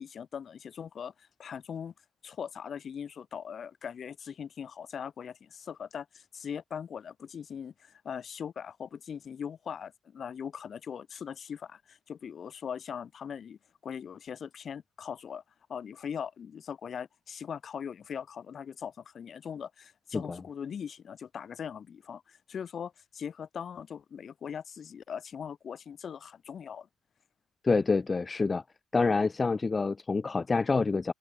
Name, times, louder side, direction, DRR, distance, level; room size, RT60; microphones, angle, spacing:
voice 1, 0.0-1.9 2.2-15.4 15.7-26.9, left 7 dB, 55° left, 3.2 m, -40 dB
voice 2, 27.6-28.6 28.9-31.1, left 4 dB, 30° left, 1.4 m, -27 dB
open air
cardioid pair, 90°, 0 cm